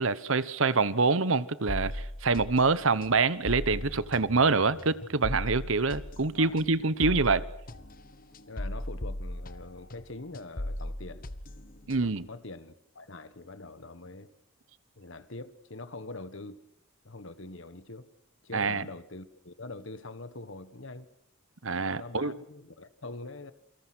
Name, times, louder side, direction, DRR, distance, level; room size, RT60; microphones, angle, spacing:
voice 1, 0.0-7.4 11.9-12.3 18.5-18.8 21.6-22.3, right 4 dB, 65° right, 1.0 m, -26 dB
sound 1, 1.7-10.1 10.3-12.3, left 1 dB, 40° left, 1.1 m, -38 dB
voice 2, 8.5-11.3 12.0-14.3 15.0-16.6 17.0-18.1 18.4-21.1 21.9-23.5, left 2 dB, 60° left, 1.5 m, -44 dB
28.0 x 24.0 x 6.3 m
head